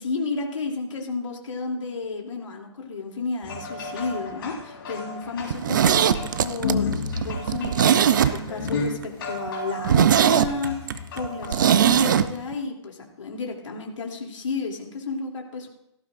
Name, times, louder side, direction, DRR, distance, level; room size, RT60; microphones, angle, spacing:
voice 1, 0.0-15.7, left 4 dB, 90° left, 0 dB, 3.0 m, -32 dB
sound 1, 3.4-12.0, left 3 dB, 50° left, 4.3 m, -32 dB
Zipper (clothing), 5.4-8.7 9.0-9.1 9.5-9.6 9.8-12.3 12.5-12.6, right 9 dB, 40° right, 0.5 m, -20 dB
17.0 x 15.0 x 2.6 m, 0.78 s
hypercardioid pair, 175°, 16 cm